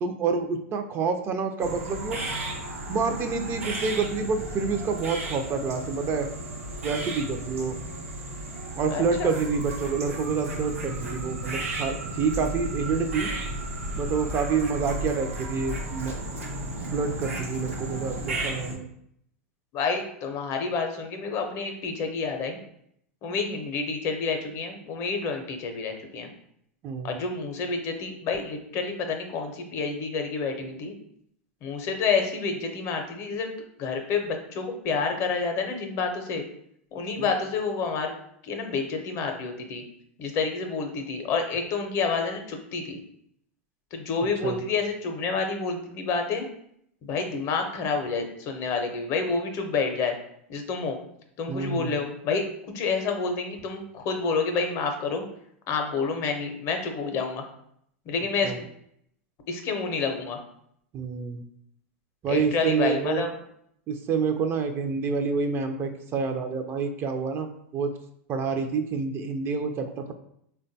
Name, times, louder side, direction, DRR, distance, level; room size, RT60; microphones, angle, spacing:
voice 1, 0.0-2.2 2.9-6.3 6.8-7.7 8.8-13.3 13.9-16.2 16.9-18.8 26.8-27.2 37.2-37.3 44.4-44.6 51.5-51.9 58.4-58.6 60.9-61.4 62.2-63.2 63.9-67.9 68.3-70.1, right 5 dB, 35° right, 6 dB, 0.4 m, -28 dB
sound 1, 1.6-18.8, right 1 dB, 90° right, 0.7 m, -34 dB
voice 2, 8.9-9.3 19.7-22.6 23.2-26.3 27.0-30.9 31.6-33.5 33.8-36.4 36.9-38.1 38.4-39.8 40.2-43.0 43.9-46.5 47.0-50.2 50.5-51.0 51.4-52.4 52.7-55.2 55.7-57.5 58.1-58.7 59.5-60.4 62.3-63.3, left 4 dB, 45° left, 5 dB, 0.6 m, -29 dB
3.6 x 2.2 x 2.6 m, 0.71 s
hypercardioid pair, 110°, 7 cm